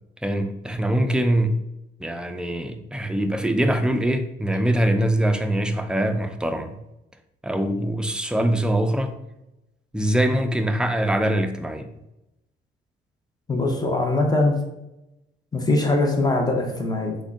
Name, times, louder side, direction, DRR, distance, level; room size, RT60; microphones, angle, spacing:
voice 1, 0.2-1.6 2.0-6.8 7.4-9.2 9.9-11.9, right 1 dB, 5° right, 6 dB, 0.3 m, -23 dB
voice 2, 13.5-14.6 15.5-17.2, left 2 dB, 20° left, 2 dB, 0.7 m, -22 dB
3.5 x 2.2 x 3.6 m, 0.91 s
cardioid pair, 90°, 20 cm